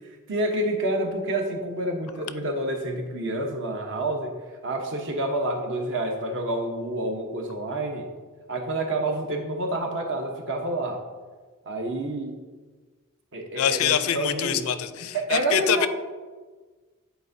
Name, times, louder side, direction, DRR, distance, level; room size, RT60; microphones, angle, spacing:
voice 1, 0.3-4.4 4.6-8.1 8.5-11.0 11.7-12.4 13.3-14.7 15.1-15.9, right 1 dB, 60° right, 2 dB, 0.9 m, -28 dB
voice 2, 13.5-15.9, left 9 dB, 65° left, 12 dB, 0.4 m, -25 dB
10.0 x 4.4 x 2.7 m, 1.4 s
head